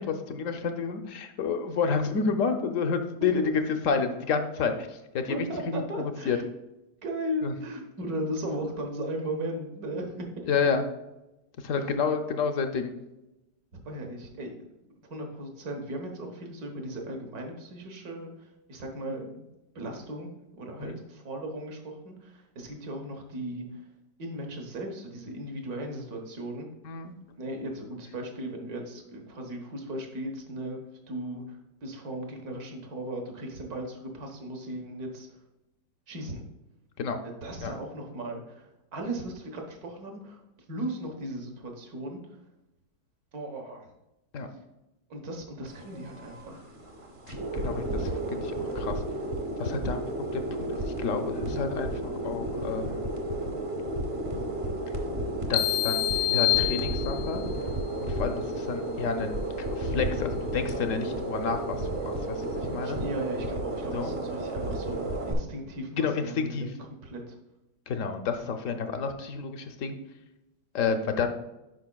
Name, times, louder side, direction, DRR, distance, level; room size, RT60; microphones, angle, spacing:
voice 1, 0.0-3.4 3.8-5.3 5.7-6.4 7.4-7.5 10.5-10.8 11.6-12.9 20.8-21.0 26.8-27.1 37.0-37.2 37.6-37.7 44.3-44.5 47.3-49.0 49.6-50.0 50.3-53.0 55.5-57.4 58.0-59.4 59.7-63.0 63.9-64.1 66.0-66.7 67.9-70.0 70.7-71.3, left 5 dB, 65° left, 7 dB, 0.8 m, -30 dB
voice 2, 5.3-6.4 7.0-10.5 11.8-11.9 13.7-14.5 15.1-19.4 19.7-20.3 20.6-23.9 24.2-26.7 27.4-35.4 36.1-36.4 37.2-40.4 40.7-42.4 43.3-43.9 45.1-46.6 62.6-66.7 67.0-67.4, right 1 dB, 60° right, 2 dB, 1.6 m, -37 dB
sound 1, 45.7-65.3, right 1 dB, 40° right, 1.2 m, -32 dB
sound 2, 55.5-57.5, left 17 dB, 80° left, 1.3 m, -26 dB
10.5 x 5.0 x 2.3 m, 0.97 s
omnidirectional pair, 1.9 m